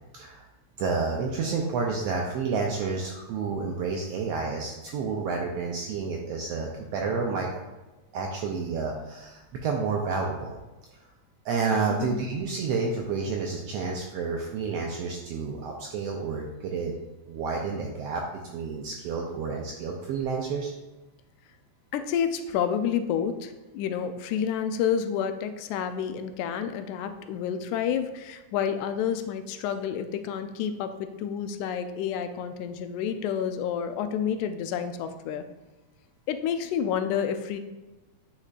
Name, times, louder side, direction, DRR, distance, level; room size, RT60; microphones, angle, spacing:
voice 1, 0.1-0.4 0.8-7.5 8.1-10.6 11.4-16.9 17.3-18.2 18.5-20.7, right 4 dB, 80° right, 0 dB, 1.4 m, -30 dB
voice 2, 21.9-35.5 36.3-37.6, left 8 dB, 85° left, 9 dB, 2.0 m, -29 dB
9.7 x 4.3 x 2.4 m, 1.1 s
omnidirectional pair, 3.4 m